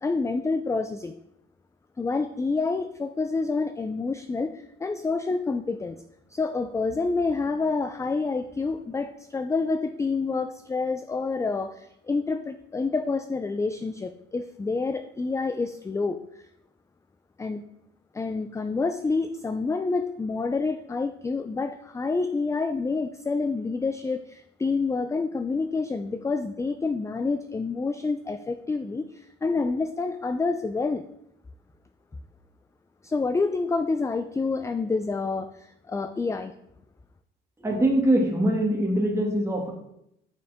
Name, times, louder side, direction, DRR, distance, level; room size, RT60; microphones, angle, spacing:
voice 1, 0.0-1.1 2.0-6.0 6.3-16.4 17.4-17.6 18.1-31.0 33.0-36.5, left 4 dB, 15° left, 10 dB, 0.4 m, -28 dB
voice 2, 37.6-39.7, right 1 dB, 15° right, 0 dB, 2.0 m, -23 dB
6.7 x 6.5 x 3.6 m, 0.79 s
cardioid pair, 90°, 20 cm